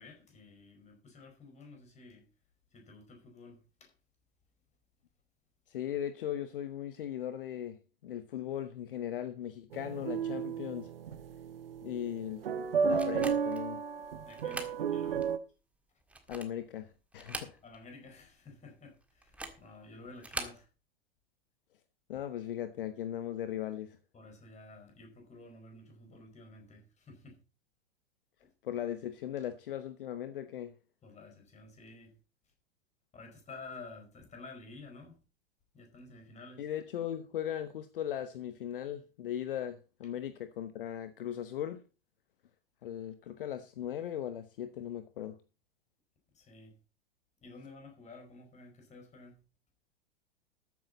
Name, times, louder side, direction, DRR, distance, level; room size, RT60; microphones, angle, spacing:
voice 1, 0.0-2.3 2.7-3.9 14.2-15.3 17.6-20.7 24.1-27.4 31.0-32.2 33.1-35.2 35.7-36.7 46.3-46.7 47.4-49.4, left 3 dB, 20° left, 4.9 m, -52 dB
voice 2, 5.7-10.9 11.8-12.4 12.8-13.8 16.3-17.6 22.1-24.0 28.6-30.7 36.6-41.8 42.8-45.4, left 10 dB, 60° left, 1.0 m, -38 dB
sound 1, 9.7-15.4, right 6 dB, 65° right, 1.1 m, -33 dB
sound 2, 13.0-13.7 14.3-14.8 15.2-15.3 16.0-16.6 17.1-17.9 18.2-18.3 19.2-19.7 20.2-20.6, right 2 dB, 5° right, 1.7 m, -42 dB
13.5 x 9.5 x 4.1 m
figure-of-eight pair, 90°, 31 cm